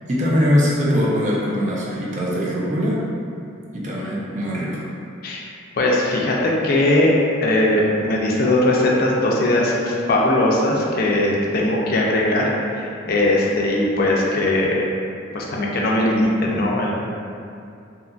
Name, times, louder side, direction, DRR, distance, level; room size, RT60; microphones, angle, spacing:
voice 1, 0.1-3.0 3.7-4.8, equal, 40° right, -5 dB, 0.5 m, -21 dB
voice 2, 5.8-7.1 7.4-14.8 15.3-16.9, left 1 dB, 50° left, -3 dB, 0.4 m, -19 dB
2.8 x 2.5 x 2.3 m, 2.5 s
head